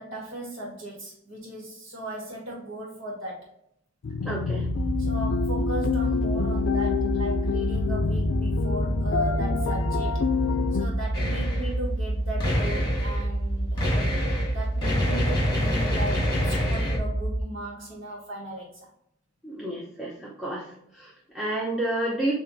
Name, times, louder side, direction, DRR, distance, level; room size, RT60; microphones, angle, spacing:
voice 1, 0.0-3.5 5.0-10.2 10.7-14.0 14.5-18.9, right 1 dB, 75° right, -3 dB, 1.4 m, -37 dB
sound 1, 4.0-10.9, left 6 dB, 70° left, 0.4 m, -27 dB
voice 2, 4.2-4.7 19.4-20.7 20.9-22.3, right 1 dB, ahead, -5 dB, 0.6 m, -30 dB
sound 2, 4.6-17.4, right 1 dB, 60° right, 0.9 m, -28 dB
sound 3, 11.1-11.7 12.4-13.2 13.8-17.0, left 1 dB, 20° left, 1.5 m, -27 dB
7.2 x 2.5 x 2.7 m, 0.76 s
head